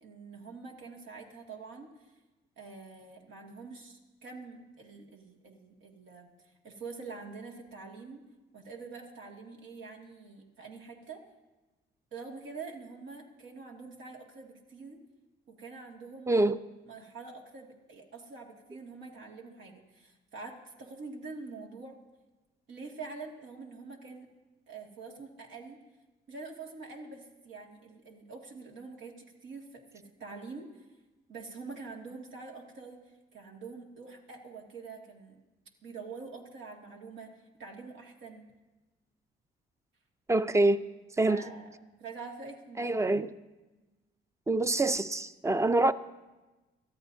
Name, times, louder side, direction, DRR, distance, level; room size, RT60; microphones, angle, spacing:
voice 1, 0.0-2.1 2.6-8.2 8.5-11.2 12.1-15.0 15.5-16.3 16.9-22.0 22.7-24.3 24.7-25.8 26.3-30.8 31.3-35.4 35.8-37.3 37.6-38.5 41.2-41.7 42.0-43.0 45.5-45.7, right 4 dB, 75° right, 2.1 m, -45 dB
voice 2, 16.3-16.6 40.3-40.8 41.2-41.4 42.8-43.3 44.5-45.9, right 2 dB, 15° right, 0.6 m, -25 dB
23.5 x 13.5 x 2.7 m
cardioid pair, 90°, 20 cm